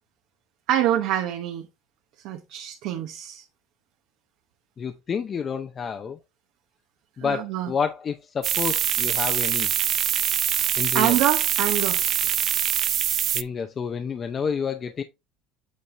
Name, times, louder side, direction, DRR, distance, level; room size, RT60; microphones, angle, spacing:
voice 1, 0.7-1.7 2.2-3.4 7.2-7.7 10.9-12.0, right 12 dB, 60° right, 1.0 m, -25 dB
voice 2, 4.8-6.2 7.2-9.7 10.8-11.2 13.3-15.0, left 6 dB, 30° left, 0.6 m, -29 dB
sound 1, 8.4-13.4, right 10 dB, 40° right, 0.4 m, -24 dB
8.4 x 4.1 x 3.3 m
cardioid pair, 140°, 0 cm